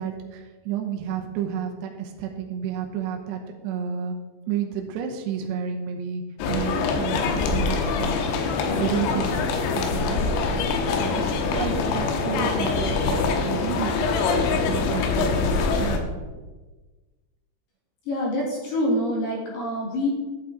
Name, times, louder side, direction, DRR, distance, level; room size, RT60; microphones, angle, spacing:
voice 1, 0.0-4.2 4.5-6.2 6.5-8.2 8.8-10.2 11.0-16.1, right 7 dB, 75° right, 2 dB, 2.6 m, -31 dB
sound 1, 6.4-16.0, left 4 dB, 80° left, 2.9 m, -24 dB
voice 2, 18.1-20.1, left 1 dB, 55° left, -2 dB, 2.9 m, -26 dB
10.5 x 8.6 x 3.7 m, 1.3 s
omnidirectional pair, 5.7 m